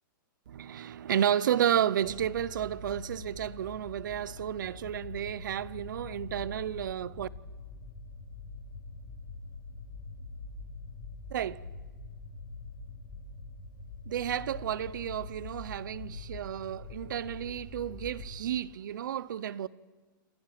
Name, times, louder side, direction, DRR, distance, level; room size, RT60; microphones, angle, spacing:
voice 1, 0.5-7.3 11.3-11.6 14.1-19.7, right 10 dB, 60° right, 0.7 m, -32 dB
sound 1, 2.0-18.4, left 3 dB, 45° left, 6.7 m, -44 dB
28.0 x 24.0 x 5.9 m
hypercardioid pair, 180°, 12 cm